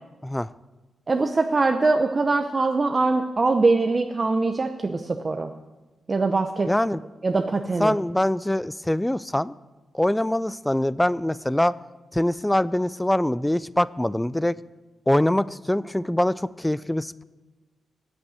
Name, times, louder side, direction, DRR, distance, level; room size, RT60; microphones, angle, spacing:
voice 1, 1.1-5.5 6.1-6.7 7.2-8.0, right 3 dB, 35° right, 5 dB, 0.7 m, -22 dB
voice 2, 6.7-7.0 7.8-9.6 9.9-11.7 12.1-14.5 15.1-17.2, left 1 dB, 10° left, 18 dB, 0.4 m, -23 dB
8.6 x 8.2 x 9.0 m, 1.2 s
cardioid pair, 80°, 0 cm